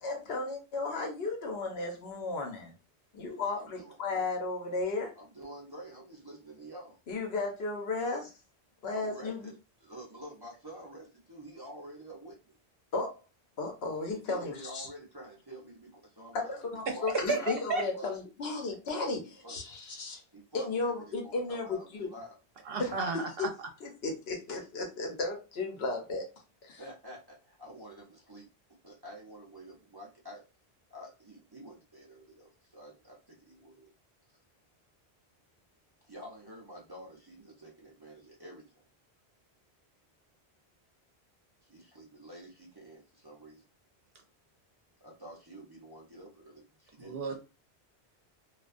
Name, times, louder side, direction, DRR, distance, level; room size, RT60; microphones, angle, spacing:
voice 1, 0.0-2.7 3.1-5.1 7.1-8.3 8.8-9.5 12.9-13.2 13.6-14.9 16.3-20.2 20.5-22.1 22.8-23.0 23.4-23.5 23.8-26.2 26.6-26.8, left 3 dB, 70° left, 2 dB, 1.0 m, -34 dB
voice 2, 3.5-4.3 5.2-7.0 8.9-9.5 9.8-12.6 14.1-16.7 16.9-17.5 17.9-18.1 19.4-19.6 20.3-22.4 26.8-28.5 28.8-30.4 30.9-33.9 36.0-38.8 41.6-43.6 45.0-47.2, right 1 dB, 30° right, -3 dB, 0.5 m, -49 dB
voice 3, 17.3-17.8 22.7-23.5 47.0-47.4, right 3 dB, 65° right, 4 dB, 0.8 m, -32 dB
2.3 x 2.2 x 2.4 m, 0.29 s
omnidirectional pair, 1.1 m